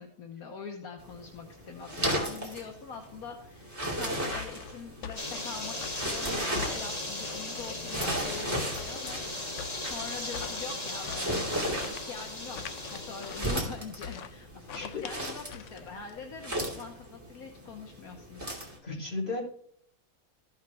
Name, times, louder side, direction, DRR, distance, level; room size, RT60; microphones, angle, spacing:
voice 1, 0.0-18.4, left 5 dB, 80° left, 1 dB, 1.6 m, -43 dB
sound 1, 1.0-18.8, right 1 dB, 10° right, 2.7 m, -36 dB
sound 2, 4.3-16.2, left 7 dB, 65° left, 0.9 m, -44 dB
sound 3, 5.2-13.6, left 2 dB, 25° left, 1.6 m, -37 dB
voice 2, 14.7-15.0 18.8-19.4, left 3 dB, 45° left, -6 dB, 3.6 m, -34 dB
14.5 x 5.5 x 3.5 m, 0.63 s
omnidirectional pair, 1.5 m